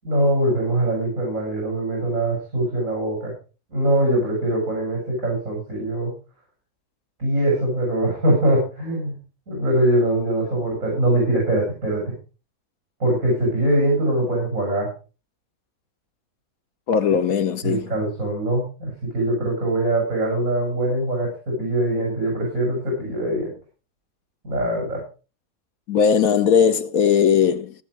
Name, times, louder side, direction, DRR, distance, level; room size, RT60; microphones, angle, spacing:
voice 1, 0.0-3.3 3.7-6.1 7.2-9.2 9.5-12.1 13.0-14.9 17.6-23.5 24.4-25.0, right 1 dB, 65° right, 7.5 m, -22 dB
voice 2, 16.9-17.9 25.9-27.7, left 7 dB, 80° left, 1.5 m, -19 dB
18.0 x 7.4 x 4.8 m
omnidirectional pair, 1.5 m